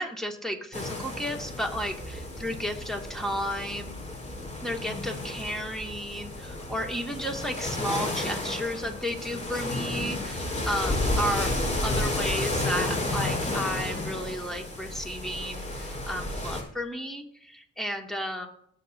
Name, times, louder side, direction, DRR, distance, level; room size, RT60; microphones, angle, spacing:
voice 1, 0.0-3.9 4.6-11.5 11.8-18.5, equal, ahead, 1 dB, 2.5 m, -33 dB
sound 1, 0.7-16.6, left 2 dB, 25° left, 5.1 m, -32 dB
21.5 x 8.0 x 2.9 m, 0.69 s
cardioid pair, 90°, 30 cm